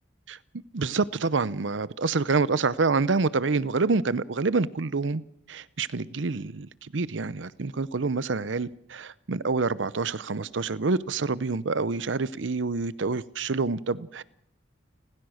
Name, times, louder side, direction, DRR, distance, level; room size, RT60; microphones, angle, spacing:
voice 1, 0.7-5.2 5.5-14.2, right 4 dB, 80° right, 0.7 m, -27 dB
29.5 x 15.5 x 6.5 m
head